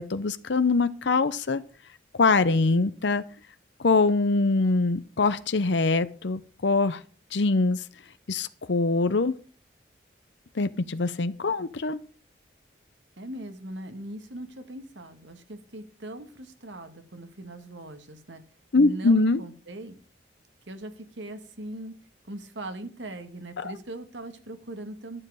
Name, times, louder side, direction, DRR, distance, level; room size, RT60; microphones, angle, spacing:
voice 1, 0.0-1.6 2.1-3.2 3.8-7.0 7.3-7.8 8.3-9.3 10.5-12.0 18.7-19.4 23.6-23.7, left 3 dB, 70° left, 13 dB, 0.7 m, -23 dB
voice 2, 13.2-18.4 18.7-19.9 20.7-21.9 22.3-25.2, right 1 dB, 75° right, 8 dB, 1.8 m, -40 dB
12.0 x 7.7 x 6.4 m, 0.39 s
head